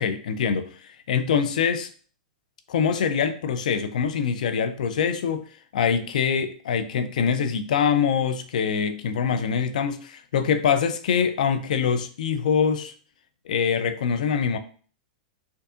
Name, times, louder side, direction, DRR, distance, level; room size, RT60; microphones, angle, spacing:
voice 1, 0.0-1.9 2.7-5.4 5.7-12.9 13.5-14.6, left 7 dB, 80° left, 9 dB, 0.5 m, -24 dB
4.5 x 2.6 x 2.5 m, 0.42 s
supercardioid pair, 140°, 4 cm